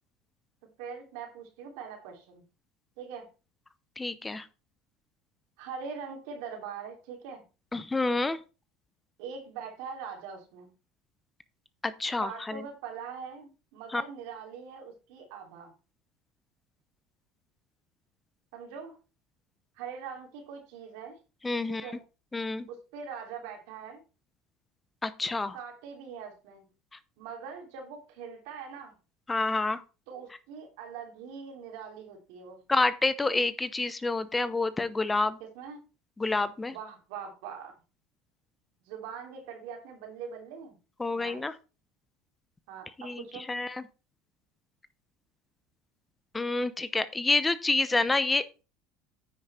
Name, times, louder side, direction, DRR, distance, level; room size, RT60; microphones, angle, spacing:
voice 1, 0.8-2.4 3.0-3.3 5.6-7.4 9.2-10.7 12.2-15.7 18.5-18.9 19.8-21.2 21.7-22.0 22.7-24.0 25.5-26.7 27.2-28.9 30.1-32.6 35.4-35.8 36.6-37.7 38.8-40.8 41.1-41.5 42.7-43.5, right 6 dB, 75° right, 3 dB, 3.1 m, -42 dB
voice 2, 4.0-4.5 7.7-8.4 11.8-12.7 13.9-14.0 21.4-21.9 22.3-22.7 25.0-25.6 29.3-29.8 32.7-35.4 36.2-36.7 41.0-41.5 43.0-43.8 46.3-48.6, left 3 dB, 15° left, 15 dB, 0.7 m, -28 dB
9.7 x 5.7 x 4.3 m, 0.32 s
supercardioid pair, 95°, 0 cm